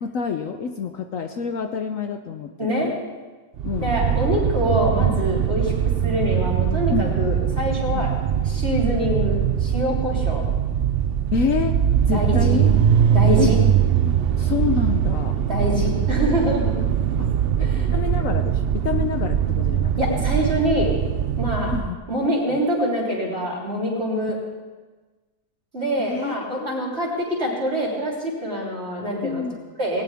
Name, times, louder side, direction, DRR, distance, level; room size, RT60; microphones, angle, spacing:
voice 1, 0.0-3.0 3.6-3.9 6.9-7.1 7.9-8.1 9.0-9.1 11.3-11.8 12.1-12.7 13.4-13.5 14.4-15.4 17.2-17.3 17.6-20.2 21.7-22.0 22.5-22.6 26.0-27.2 29.2-29.6, left 6 dB, 60° left, 6 dB, 1.1 m, -28 dB
voice 2, 2.6-2.9 3.8-8.1 8.4-10.4 12.1-12.6 13.1-13.6 15.5-16.8 17.6-17.9 20.0-20.9 21.4-21.7 22.1-24.4 25.7-29.4 29.8-30.0, equal, 40° right, -4 dB, 3.8 m, -25 dB
sound 1, 3.6-21.9, right 9 dB, 60° right, 0.6 m, -21 dB
19.0 x 18.0 x 3.5 m, 1.3 s
omnidirectional pair, 1.7 m